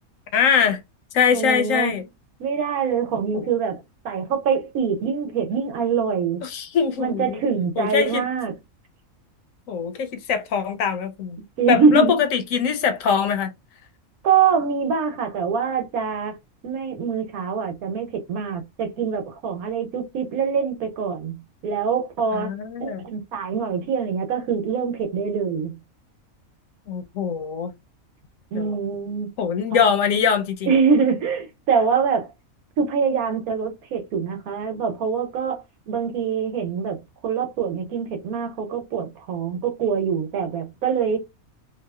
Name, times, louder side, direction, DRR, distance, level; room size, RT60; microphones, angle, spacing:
voice 1, 0.3-0.8 1.1-2.0 3.3-3.5 6.4-7.4 7.8-8.3 9.7-11.4 11.7-13.5 22.3-23.0 26.9-27.7 28.5-28.8 29.4-30.7, left 7 dB, 70° left, 1.0 m, -22 dB
voice 2, 1.3-1.9 2.4-3.8 4.0-6.4 7.0-8.5 11.6-12.2 14.2-16.3 16.6-22.5 22.8-25.8 28.5-29.3 29.7-29.9 30.7-32.3 32.8-37.0 37.2-41.2, right 6 dB, 85° right, 1.2 m, -24 dB
3.0 x 2.4 x 2.2 m
omnidirectional pair, 1.5 m